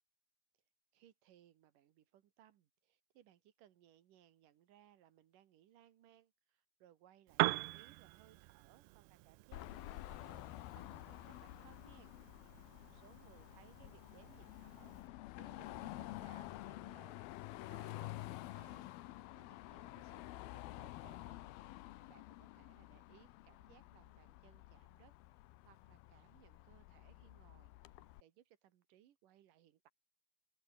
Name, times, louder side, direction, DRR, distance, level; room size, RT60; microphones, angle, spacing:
voice 1, 0.9-12.1 12.5-17.2 17.6-18.9 19.4-21.5 22.1-25.1 25.6-29.9, right 11 dB, 60° right, 2.8 m, -66 dB
Piano, 7.3-15.1, right 23 dB, 90° right, 2.7 m, -43 dB
Car passing by / Traffic noise roadway noise / Engine, 9.5-28.2, left 17 dB, 75° left, 2.6 m, -50 dB
open air
omnidirectional pair, 4.7 m